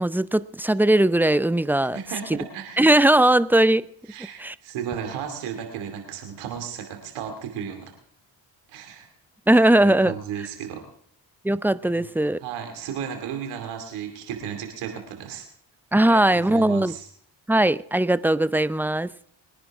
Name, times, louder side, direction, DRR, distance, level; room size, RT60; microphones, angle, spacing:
voice 1, 0.0-2.0 2.3-2.4 2.8-3.9 4.4-4.5 9.5-10.1 11.4-12.4 15.9-16.9 17.5-19.1, right 1 dB, 5° right, 0.5 m, -19 dB
voice 2, 1.8-2.8 4.1-7.9 8.7-9.1 9.8-10.8 11.9-12.1 12.4-15.5 16.0-17.1, right 8 dB, 90° right, 2.6 m, -34 dB
22.0 x 10.5 x 3.6 m
supercardioid pair, 45°, 49 cm